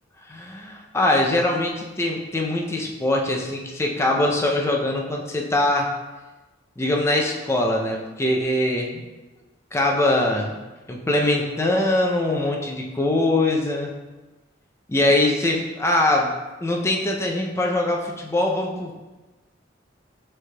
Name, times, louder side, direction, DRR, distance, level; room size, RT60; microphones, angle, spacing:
voice 1, 0.3-5.9 6.8-9.0 9.7-10.6 10.9-13.9 14.9-16.3 16.6-18.9, left 1 dB, 15° left, 0 dB, 0.4 m, -22 dB
6.3 x 3.3 x 2.2 m, 1.2 s
head